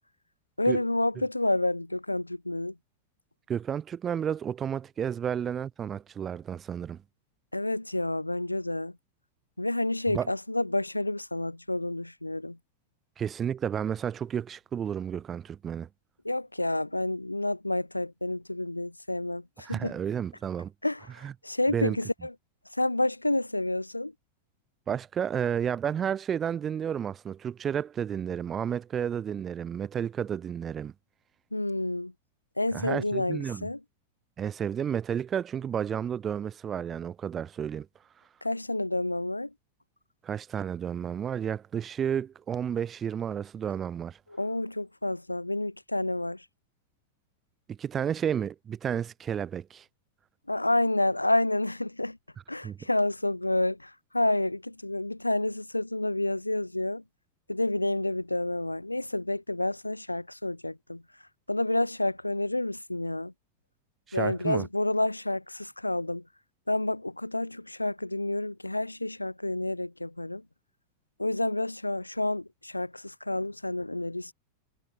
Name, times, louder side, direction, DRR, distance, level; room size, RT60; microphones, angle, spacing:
voice 1, 0.6-2.7 7.5-8.9 9.6-12.6 16.2-19.9 20.8-21.1 21.4-22.3 22.7-24.1 31.5-32.1 32.6-33.8 38.4-39.5 44.3-46.4 50.5-52.2 52.5-57.0 57.5-61.0 61.5-63.3 64.1-66.2 66.7-70.4 71.2-74.3, left 1 dB, 85° left, 0.3 m, -29 dB
voice 2, 3.5-7.0 10.1-10.3 13.2-15.9 19.6-20.7 21.2-21.3 21.7-22.0 24.9-30.9 32.7-33.7 34.4-37.9 40.2-44.2 47.7-49.8 52.6-52.8 64.1-64.7, right 8 dB, 25° right, 0.3 m, -31 dB
figure-of-eight pair, 90°, 0 cm